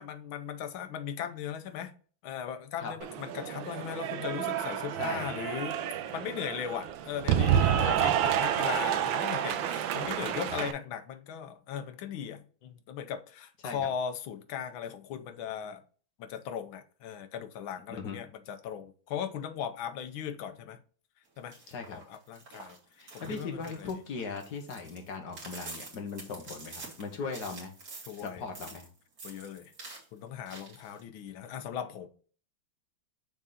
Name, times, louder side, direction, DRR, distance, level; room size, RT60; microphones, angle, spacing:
voice 1, 0.0-1.9 2.2-5.8 6.1-15.8 16.2-20.8 21.4-21.6 21.9-22.8 23.1-23.9 28.1-28.4 29.2-32.1, left 8 dB, 80° left, 1.5 m, -38 dB
Cheering / Applause, 3.0-10.7, right 10 dB, 75° right, 1.3 m, -29 dB
voice 2, 5.0-5.3 7.8-8.1 13.6-13.9 18.0-18.2 21.7-22.0 23.0-27.7 28.2-28.9, left 4 dB, 55° left, 1.8 m, -38 dB
sound 1, 21.4-28.9 29.2-30.0 30.5-31.0, right 3 dB, 45° right, 2.2 m, -47 dB
6.5 x 3.7 x 4.1 m
omnidirectional pair, 2.2 m